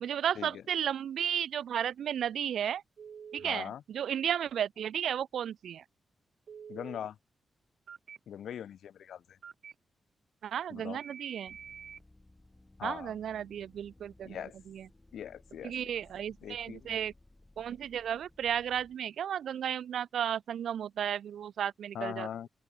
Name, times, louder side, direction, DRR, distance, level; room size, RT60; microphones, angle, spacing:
voice 1, 0.0-2.8 3.3-5.8 10.4-11.5 12.8-14.4 14.7-14.9 15.6-17.1 17.6-22.3, right 9 dB, 85° right, 0.8 m, -34 dB
Telephone, 3.0-3.5 6.5-7.0 7.9-8.2 9.4-9.7 11.0-12.0, right 7 dB, 65° right, 1.8 m, -47 dB
voice 2, 3.4-3.8 6.7-7.2 8.3-9.4 10.7-11.0 12.8-13.1 14.2-14.5 15.1-15.9 16.4-17.0 21.9-22.5, left 9 dB, 85° left, 0.5 m, -41 dB
sound 1, 11.5-19.0, left 2 dB, 15° left, 3.3 m, -60 dB
open air
cardioid pair, 105°, 0 cm